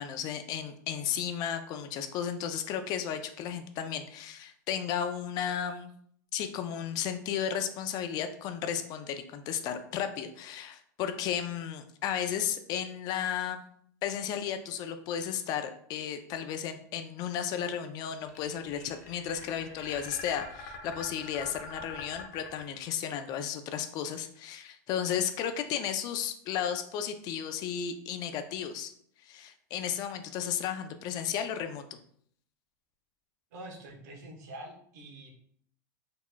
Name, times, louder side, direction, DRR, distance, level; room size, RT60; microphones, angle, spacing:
voice 1, 0.0-5.9 6.3-13.6 14.0-28.9 29.2-32.0, left 9 dB, 45° left, 8 dB, 0.4 m, -34 dB
sound 1, 18.1-23.2, left 4 dB, 65° left, 1.0 m, -44 dB
voice 2, 33.5-35.3, right 1 dB, 75° right, 1 dB, 1.0 m, -45 dB
3.8 x 2.9 x 2.2 m, 0.63 s
supercardioid pair, 120°, 9 cm